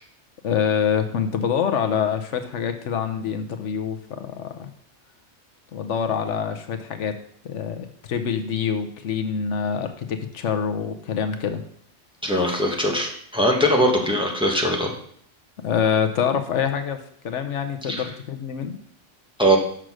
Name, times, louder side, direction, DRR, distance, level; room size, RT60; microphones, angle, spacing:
voice 1, 0.4-4.7 5.7-11.6 15.6-18.8, left 7 dB, 75° left, 7 dB, 1.1 m, -26 dB
voice 2, 12.2-14.9 17.9-18.0 19.4-19.6, equal, 5° right, -1 dB, 1.3 m, -21 dB
6.4 x 6.2 x 6.1 m, 0.66 s
omnidirectional pair, 1.2 m